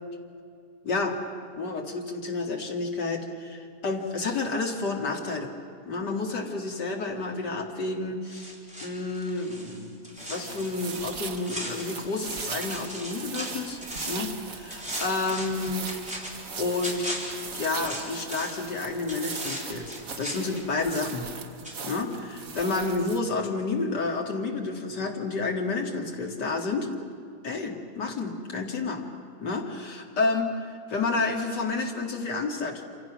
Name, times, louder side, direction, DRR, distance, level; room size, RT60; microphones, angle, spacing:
voice 1, 0.8-1.2 1.6-5.5 5.9-8.5 8.8-13.8 14.1-15.9 16.6-17.1 17.5-21.3 21.8-26.9 27.4-29.0 29.4-32.8, left 3 dB, 80° left, 1 dB, 2.9 m, -30 dB
sound 1, 8.3-12.3 12.6-14.3 14.7-18.7 19.1-21.4 21.6-21.8, equal, 5° right, 4.2 m, -38 dB
sound 2, 10.2-23.2, right 5 dB, 50° right, 1.6 m, -39 dB
27.5 x 27.0 x 6.1 m, 2.3 s
omnidirectional pair, 1.8 m